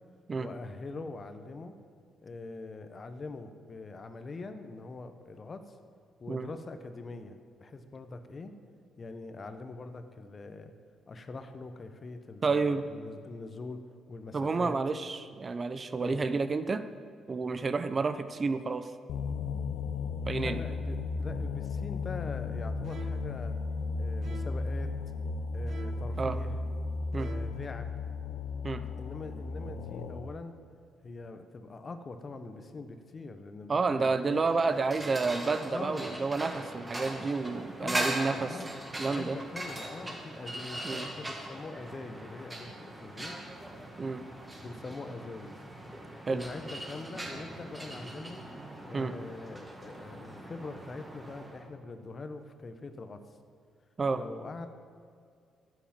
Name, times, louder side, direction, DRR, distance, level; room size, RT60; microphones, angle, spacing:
voice 1, 0.4-1.8 2.2-5.8 6.2-8.5 9.0-10.7 11.1-14.8 16.0-16.3 20.4-23.6 24.0-24.9 25.5-26.6 27.1-27.9 29.0-30.5 31.0-34.5 35.7-36.2 37.8-43.4 44.6-45.6 46.3-48.4 48.8-53.2 54.1-54.7, left 3 dB, 40° left, 8 dB, 1.0 m, -43 dB
voice 2, 12.4-12.8 14.3-16.8 17.3-18.9 20.3-20.6 26.2-26.4 27.1-27.3 28.6-28.8 33.7-38.5 39.0-39.4 40.8-41.1 44.0-44.2 46.3-46.4 48.9-49.1 54.0-54.2, right 4 dB, 35° right, 11 dB, 0.6 m, -30 dB
sound 1, 19.1-30.4, left 4 dB, 85° left, 0.8 m, -35 dB
sound 2, 22.8-23.3 24.2-24.7 25.7-26.2 27.1-27.7, right 4 dB, 60° right, 1.2 m, -47 dB
sound 3, 34.2-51.7, right 1 dB, 15° right, 1.9 m, -40 dB
10.0 x 8.2 x 7.4 m, 2.2 s
cardioid pair, 90°, 0 cm